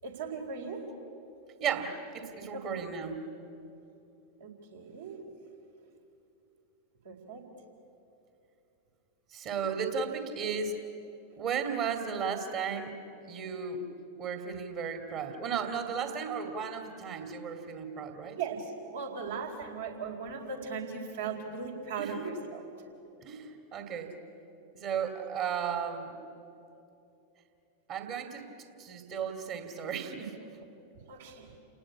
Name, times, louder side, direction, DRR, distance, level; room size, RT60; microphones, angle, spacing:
voice 1, 0.0-0.9 2.5-2.6 4.4-5.2 7.0-7.4 18.4-22.6 31.1-31.5, right 5 dB, 65° right, 0 dB, 4.4 m, -38 dB
voice 2, 1.6-3.2 9.3-10.8 11.4-13.0 13.2-13.8 14.2-18.4 22.0-22.3 23.2-24.1 24.7-26.1 27.9-28.5 28.8-30.4, right 6 dB, 40° right, 5 dB, 2.5 m, -34 dB
29.5 x 18.5 x 8.6 m, 2.9 s
figure-of-eight pair, 90°, 0 cm